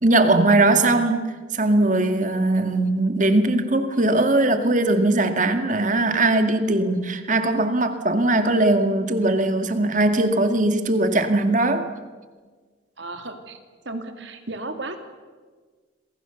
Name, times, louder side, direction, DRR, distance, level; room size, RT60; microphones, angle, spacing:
voice 1, 0.0-11.9, right 2 dB, 40° right, 7 dB, 1.9 m, -20 dB
voice 2, 13.0-13.6 13.8-15.0, right 2 dB, 65° right, 6 dB, 2.7 m, -34 dB
28.0 x 23.0 x 7.0 m, 1.5 s
head